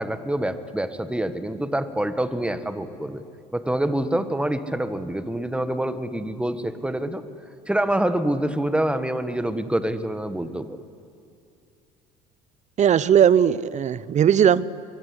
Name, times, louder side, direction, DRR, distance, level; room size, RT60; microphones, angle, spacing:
voice 1, 0.0-3.2 3.5-7.2 7.7-10.8, right 1 dB, 5° right, 11 dB, 1.8 m, -26 dB
voice 2, 12.8-14.6, right 9 dB, 40° right, 19 dB, 0.9 m, -18 dB
23.0 x 22.5 x 9.9 m, 2.4 s
hypercardioid pair, 65°, 18 cm